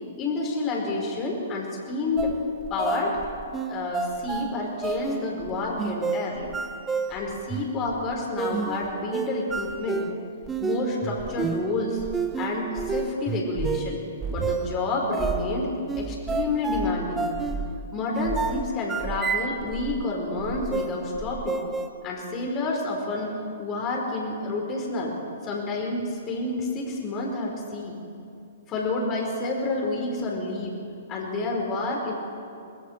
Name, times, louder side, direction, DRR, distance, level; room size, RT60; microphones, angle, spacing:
voice 1, 0.2-2.4 2.7-3.2 3.7-6.5 7.1-10.1 10.6-12.0 12.4-14.0 14.3-17.3 17.9-21.6 22.0-25.1 25.4-28.0 28.7-30.8 31.1-32.1, left 2 dB, 25° left, -1 dB, 4.9 m, -29 dB
sound 1, 2.2-20.1 20.4-21.9, right 5 dB, 15° right, 1.2 m, -31 dB
22.5 x 21.0 x 6.7 m, 2.6 s
figure-of-eight pair, 115°, 0 cm